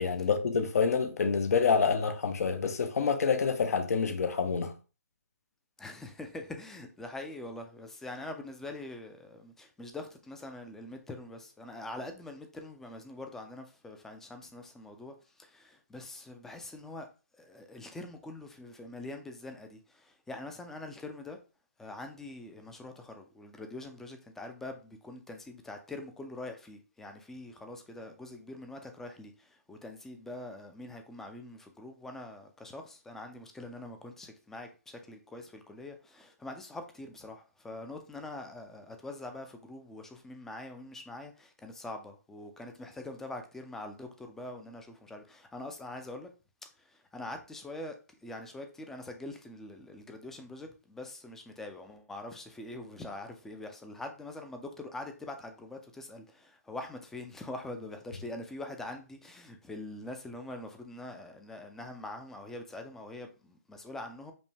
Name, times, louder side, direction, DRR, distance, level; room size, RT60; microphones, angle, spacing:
voice 1, 0.0-4.7, left 5 dB, 65° left, 0.7 m, -27 dB
voice 2, 5.8-17.1 17.3-21.4 21.8-46.3 46.8-64.3, left 2 dB, 5° left, 0.4 m, -44 dB
5.2 x 2.2 x 3.3 m
hypercardioid pair, 150°, 9 cm